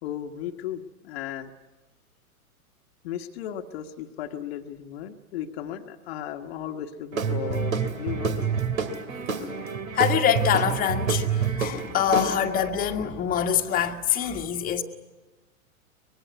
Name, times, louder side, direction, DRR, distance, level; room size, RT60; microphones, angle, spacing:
voice 1, 0.0-1.5 3.0-8.5, left 10 dB, 45° left, 1.5 m, -35 dB
Guitar / Drum, 7.1-12.7, right 6 dB, 65° right, 2.8 m, -28 dB
voice 2, 9.9-14.8, left 9 dB, 20° left, 1.6 m, -25 dB
24.0 x 21.5 x 9.6 m
figure-of-eight pair, 105°, 44 cm